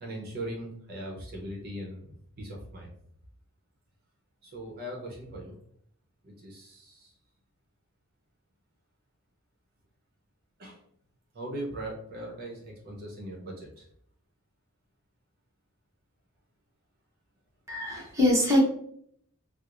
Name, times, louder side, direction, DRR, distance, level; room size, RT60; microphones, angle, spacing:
voice 1, 0.0-2.9 4.4-5.6 6.2-7.1 10.6-10.8 11.3-13.9, right 1 dB, 45° right, -2 dB, 0.7 m, -39 dB
voice 2, 17.7-18.6, left 1 dB, 15° right, -4 dB, 0.9 m, -23 dB
4.6 x 2.0 x 2.5 m, 0.68 s
head